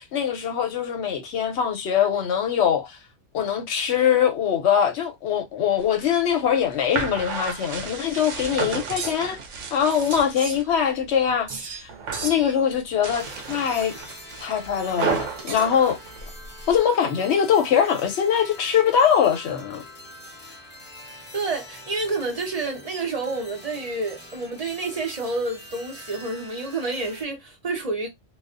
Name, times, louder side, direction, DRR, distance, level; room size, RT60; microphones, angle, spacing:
voice 1, 0.0-3.0 3.3-9.4 9.7-11.9 12.2-14.0 14.4-16.0 16.7-19.8, left 8 dB, 65° left, 0.8 m, -22 dB
sound 1, 5.8-10.7 11.1-11.6 11.9-12.4 12.9-16.8, right 6 dB, 75° right, 0.9 m, -33 dB
sound 2, 8.6-9.3 9.9-11.0 11.5-11.9 12.1-12.6 13.7-14.4 15.1-15.9, right 4 dB, 55° right, 0.4 m, -37 dB
sound 3, 13.2-27.2, left 1 dB, 15° left, 0.5 m, -44 dB
voice 2, 21.3-28.1, right 3 dB, 35° right, 0.9 m, -29 dB
2.3 x 2.3 x 2.4 m
omnidirectional pair, 1.3 m